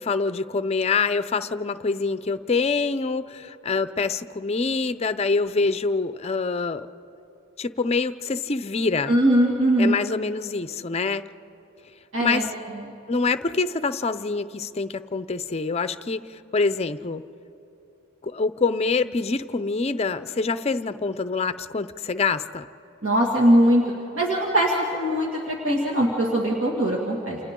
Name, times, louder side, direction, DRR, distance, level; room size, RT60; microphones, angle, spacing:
voice 1, 0.0-6.9 7.6-9.2 9.8-11.2 12.2-12.5 13.1-17.2 18.2-22.7, left 4 dB, 30° left, 12 dB, 0.5 m, -25 dB
voice 2, 9.1-10.0 12.1-12.9 23.0-23.8 24.1-27.4, equal, 65° right, -2 dB, 2.3 m, -21 dB
29.5 x 27.5 x 3.8 m, 3.0 s
head